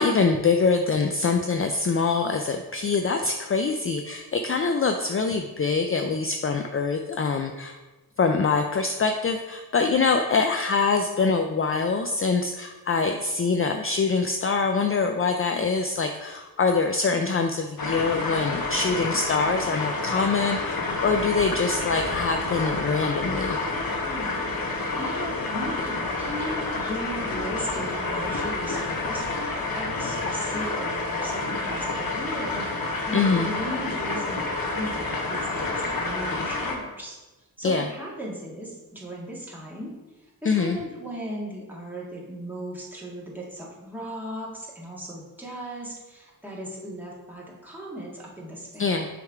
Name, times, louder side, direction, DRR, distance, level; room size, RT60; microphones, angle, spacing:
voice 1, 0.0-7.8 8.2-23.6 33.1-33.5 37.6-37.9 40.4-40.8 48.8-49.1, left 4 dB, 35° left, 5 dB, 0.4 m, -24 dB
sound 1, 17.8-36.7, left 3 dB, 65° left, 1.1 m, -29 dB
voice 2, 24.0-37.2 37.6-39.9 40.4-48.9, equal, 5° right, -5 dB, 1.9 m, -37 dB
6.3 x 3.4 x 4.8 m, 1.1 s
cardioid pair, 60°, 38 cm